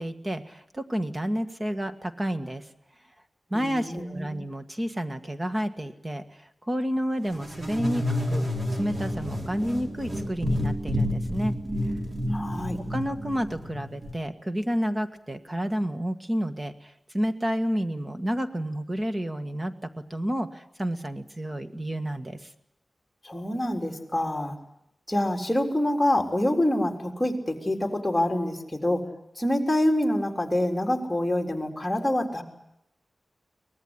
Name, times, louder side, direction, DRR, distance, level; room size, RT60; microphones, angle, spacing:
voice 1, 0.0-2.6 3.5-6.2 6.7-8.5 8.8-11.6 12.9-19.7 20.1-22.5, equal, 20° right, 8 dB, 1.7 m, -30 dB
voice 2, 3.5-4.4 12.3-12.8 23.2-24.5 25.1-29.0 29.4-32.4, left 1 dB, 10° left, 2 dB, 3.9 m, -26 dB
sound 1, 7.3-14.1, left 1 dB, 35° right, 4.4 m, -30 dB
23.5 x 19.5 x 9.9 m, 0.81 s
wide cardioid pair, 115°, 0 cm